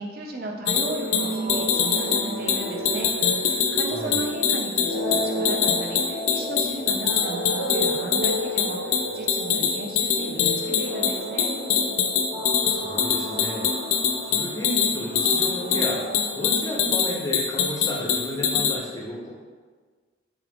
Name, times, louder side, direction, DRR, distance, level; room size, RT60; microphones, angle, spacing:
voice 1, 0.0-3.1 3.4-11.6, right 1 dB, 50° right, 1 dB, 0.4 m, -35 dB
sound 1, 0.7-18.8, left 7 dB, 85° left, 0.4 m, -24 dB
sound 2, 0.8-17.2, right 1 dB, 30° right, 0.8 m, -33 dB
voice 2, 3.9-4.2 12.3-13.7 14.2-19.3, left 1 dB, 20° left, -4 dB, 0.5 m, -33 dB
3.7 x 2.4 x 3.4 m, 1.5 s
head